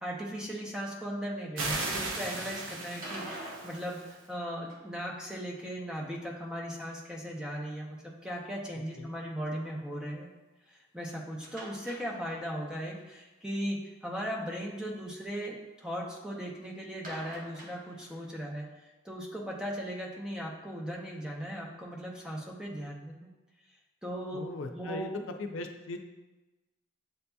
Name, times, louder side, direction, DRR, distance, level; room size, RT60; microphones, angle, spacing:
voice 1, 0.0-10.3 10.9-18.7 19.0-23.3 24.0-24.4 24.7-25.2, equal, 5° right, -2 dB, 0.5 m, -38 dB
sound 1, 1.6-4.1, right 2 dB, 90° right, 0.7 m, -36 dB
sound 2, 3.0-5.1 11.4-12.7 13.0-13.1 13.4-13.5 17.0-18.4, right 1 dB, 45° right, 0.8 m, -46 dB
voice 2, 24.3-25.1 25.4-26.0, left 2 dB, 90° left, 5 dB, 0.4 m, -39 dB
7.8 x 2.7 x 2.2 m, 1.1 s
head